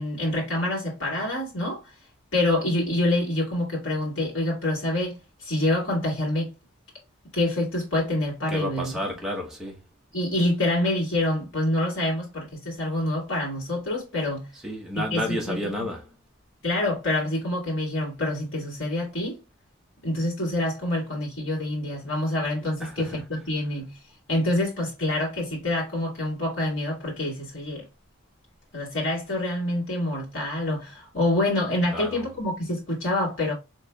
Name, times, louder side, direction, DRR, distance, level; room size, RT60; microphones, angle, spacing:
voice 1, 0.0-2.0 2.3-6.5 7.3-8.9 10.1-14.5 15.0-15.9 16.6-19.4 20.0-24.0 24.3-27.9 28.7-33.5, left 1 dB, 65° left, 1.9 m, -26 dB
voice 2, 8.5-9.9 14.5-16.2 22.8-23.2 31.9-32.3, left 1 dB, 5° right, 0.8 m, -31 dB
4.1 x 3.0 x 2.2 m
head